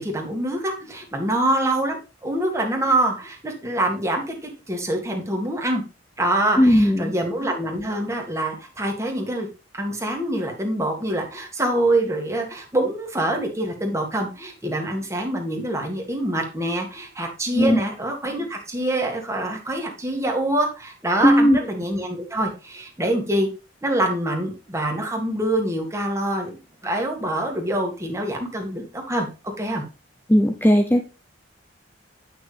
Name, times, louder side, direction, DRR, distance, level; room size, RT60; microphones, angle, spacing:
voice 1, 0.0-5.8 6.2-9.5 9.7-23.5 23.8-26.6 26.8-29.3 29.6-29.8, right 1 dB, 15° right, 1 dB, 1.8 m, -25 dB
voice 2, 6.6-7.1 17.6-17.8 21.2-21.6 30.3-31.0, equal, 10° left, 5 dB, 0.6 m, -16 dB
9.0 x 5.8 x 3.3 m, 0.31 s
head